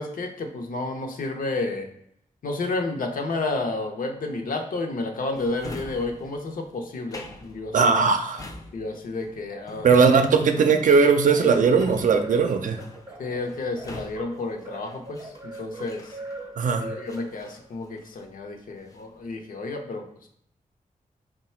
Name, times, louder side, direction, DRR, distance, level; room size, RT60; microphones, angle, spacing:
voice 1, 0.0-1.9 2.4-7.9 8.7-9.9 11.4-11.6 13.2-16.2 16.8-20.3, left 2 dB, 80° left, 3 dB, 0.6 m, -31 dB
Drawer open or close, 5.3-16.6 17.0-18.3 18.7-19.2, left 2 dB, 25° left, 0.4 m, -44 dB
voice 2, 7.7-8.5 9.8-12.8 16.6-16.9, right 5 dB, 70° right, 6 dB, 0.5 m, -19 dB
sound 1, 9.5-17.7, right 2 dB, 30° right, 0.7 m, -42 dB
3.8 x 2.2 x 4.3 m, 0.71 s
wide cardioid pair, 145°, 14 cm